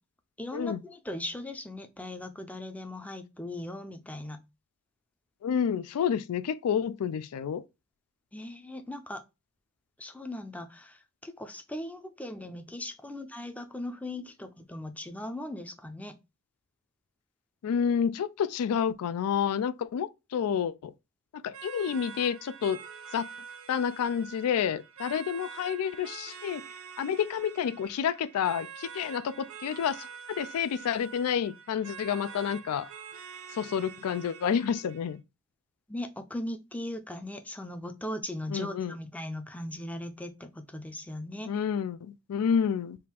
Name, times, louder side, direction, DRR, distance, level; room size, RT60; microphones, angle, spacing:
voice 1, 0.4-4.4 8.3-9.2 10.0-16.2 35.9-41.6, left 1 dB, 5° left, 0.4 m, -39 dB
voice 2, 5.4-7.6 17.6-20.9 21.3-22.8 23.1-23.3 23.7-26.6 27.0-32.9 33.5-35.2 38.5-38.9 41.5-43.0, left 7 dB, 85° left, 0.3 m, -29 dB
sound 1, 21.5-35.1, right 7 dB, 65° right, 0.6 m, -46 dB
3.6 x 2.5 x 4.3 m
head